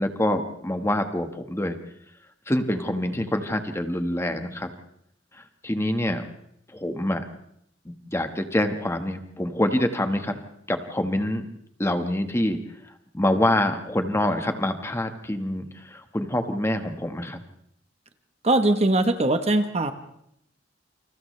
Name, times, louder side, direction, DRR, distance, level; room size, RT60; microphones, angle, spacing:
voice 1, 0.0-1.8 2.5-4.7 5.6-6.2 6.7-7.2 7.8-10.4 10.7-11.4 11.8-12.6 13.1-17.4, left 1 dB, 15° left, 6 dB, 1.5 m, -26 dB
voice 2, 18.4-19.9, right 2 dB, 35° right, 8 dB, 1.1 m, -21 dB
29.0 x 27.0 x 3.3 m, 0.73 s
head